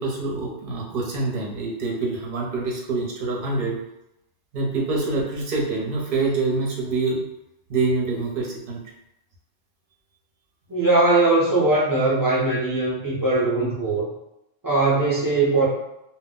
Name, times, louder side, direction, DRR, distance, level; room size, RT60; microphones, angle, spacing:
voice 1, 0.0-3.8 4.5-7.2 7.7-8.8, right 3 dB, 50° right, -2 dB, 0.7 m, -25 dB
voice 2, 10.7-14.1 14.6-15.6, right 2 dB, 25° right, -6 dB, 0.5 m, -20 dB
2.2 x 2.1 x 3.7 m, 0.84 s
omnidirectional pair, 1.3 m